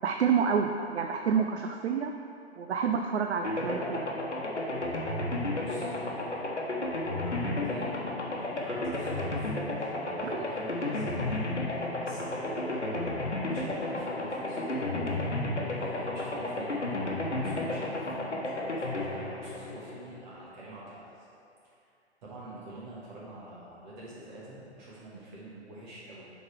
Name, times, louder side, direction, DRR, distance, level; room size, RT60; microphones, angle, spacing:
voice 1, 0.0-2.1 2.6-4.1 10.2-10.4, right 6 dB, 70° right, 4 dB, 0.5 m, -28 dB
sound 1, 3.4-20.4, left 2 dB, 90° left, 1.1 m, -32 dB
voice 2, 5.5-14.8 15.2-21.3 21.6-21.9 22.2-26.3, right 1 dB, 40° right, -7 dB, 1.5 m, -46 dB
7.0 x 4.1 x 4.6 m, 2.6 s
figure-of-eight pair, 120°, 34 cm